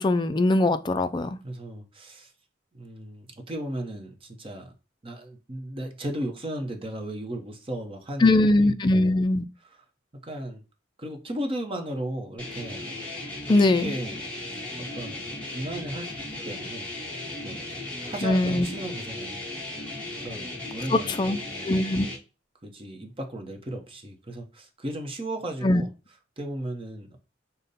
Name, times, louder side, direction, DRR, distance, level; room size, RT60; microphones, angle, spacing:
voice 1, 0.0-1.4 8.2-9.4 13.5-13.9 18.2-18.7 20.9-21.4 21.6-22.1 25.6-25.8, left 2 dB, 25° left, 0.3 m, -21 dB
voice 2, 1.4-2.3 2.7-4.7 5.0-9.2 10.3-10.6 11.0-12.9 13.4-16.9 17.4-19.4 20.2-21.7 22.6-25.9 26.4-27.2, right 1 dB, 30° right, 0.8 m, -36 dB
sound 1, 12.4-22.2, left 2 dB, 5° left, 1.5 m, -36 dB
5.2 x 2.1 x 4.0 m
head